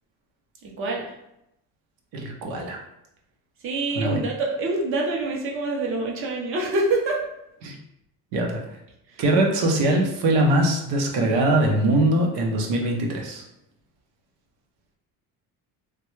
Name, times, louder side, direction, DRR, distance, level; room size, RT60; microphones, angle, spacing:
voice 1, 0.6-1.1 3.6-7.2 9.1-9.2, right 2 dB, 35° right, -1 dB, 0.6 m, -26 dB
voice 2, 2.1-2.8 3.9-4.3 7.6-7.7 8.3-8.6 9.2-13.4, right 1 dB, 85° right, 1 dB, 0.8 m, -22 dB
3.3 x 2.2 x 3.1 m, 0.82 s
cardioid pair, 175°, 37 cm